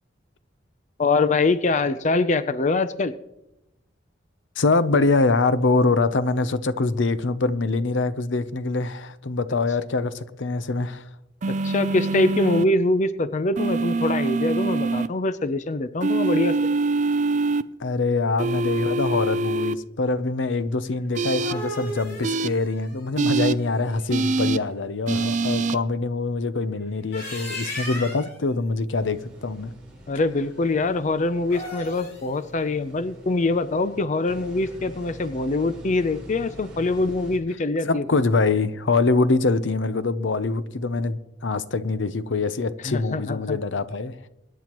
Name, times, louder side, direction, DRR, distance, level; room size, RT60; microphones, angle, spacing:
voice 1, 1.0-3.1 11.6-16.5 30.1-38.0 42.8-43.6, left 2 dB, 40° left, 0.5 m, -24 dB
voice 2, 4.6-11.1 17.8-29.7 37.9-44.3, left 3 dB, 85° left, 0.7 m, -24 dB
sound 1, 11.4-12.6 13.6-15.1 16.0-17.6 18.4-19.7 21.1-21.5 22.2-22.5 23.2-23.5 24.1-24.6 25.1-25.8, right 3 dB, 40° right, 0.5 m, -24 dB
sound 2, 21.1-24.2 26.9-28.4 31.4-32.3, equal, 55° left, 5.5 m, -36 dB
sound 3, 28.9-37.4, right 1 dB, 5° right, 4.3 m, -45 dB
24.0 x 10.0 x 3.0 m
head